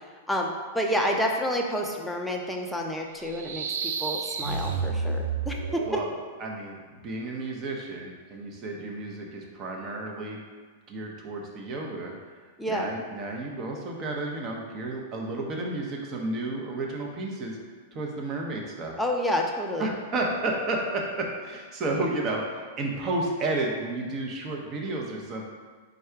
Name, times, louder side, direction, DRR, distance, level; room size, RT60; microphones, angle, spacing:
voice 1, 0.3-6.0 12.6-12.9 19.0-19.9, equal, 5° left, 0 dB, 0.5 m, -29 dB
sound 1, 3.2-6.1, right 5 dB, 80° right, 0.3 m, -30 dB
voice 2, 6.4-10.4 10.9-12.1 12.7-17.6 17.9-19.0 19.8-25.4, right 2 dB, 35° right, 0 dB, 0.8 m, -32 dB
3.7 x 2.3 x 4.4 m, 1.5 s
hypercardioid pair, 125°, 0 cm